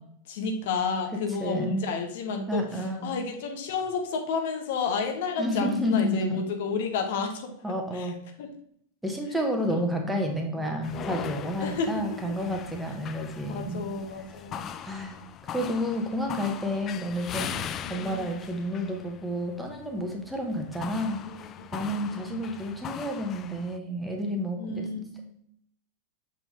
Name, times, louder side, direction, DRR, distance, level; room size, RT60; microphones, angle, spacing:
voice 1, 0.3-2.6 3.0-7.5 7.9-8.1 8.4-8.5 9.7-10.3 10.6-10.7 11.6-12.3 13.5-14.7 17.8-18.3 21.6-21.7 22.0-22.4 24.6-25.3, left 4 dB, 55° left, 4 dB, 0.9 m, -31 dB
voice 2, 1.4-1.8 2.5-3.1 5.4-6.4 7.6-8.2 9.0-13.9 14.8-15.2 15.5-21.2 21.7-24.8, equal, 5° right, 2 dB, 1.1 m, -30 dB
sound 1, 10.8-23.8, left 9 dB, 30° left, 0.3 m, -40 dB
7.1 x 4.4 x 3.4 m, 0.68 s
figure-of-eight pair, 90°, 0 cm